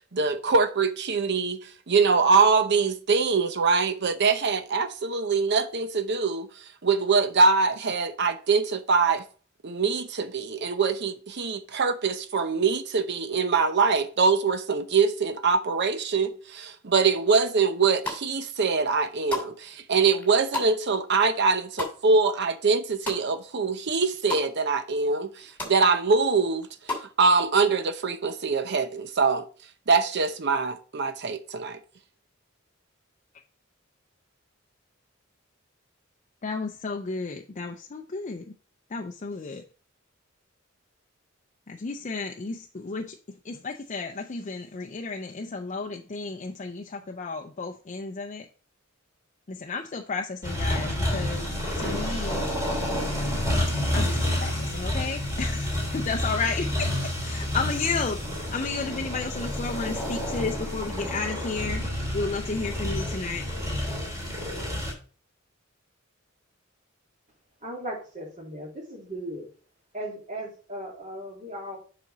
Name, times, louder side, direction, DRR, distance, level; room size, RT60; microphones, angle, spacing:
voice 1, 0.1-1.6 1.9-6.5 6.8-9.2 9.6-26.7 27.2-29.4 29.9-31.8, right 4 dB, 55° right, 0.7 m, -23 dB
sound 1, 17.8-18.5 18.8-23.6 23.9-24.5 24.9-25.0 25.2-25.8 26.2-27.1, left 3 dB, 10° left, 2.6 m, -35 dB
voice 2, 36.4-38.4 38.9-39.6 41.7-43.2 43.4-48.5 49.5-52.4 53.9-56.9 57.2-63.5, left 4 dB, 35° left, 0.5 m, -32 dB
sound 2, 50.4-64.9, left 1 dB, 15° right, 3.0 m, -29 dB
voice 3, 67.6-69.5 69.9-71.8, right 1 dB, 40° right, 2.8 m, -37 dB
7.5 x 5.1 x 4.0 m
head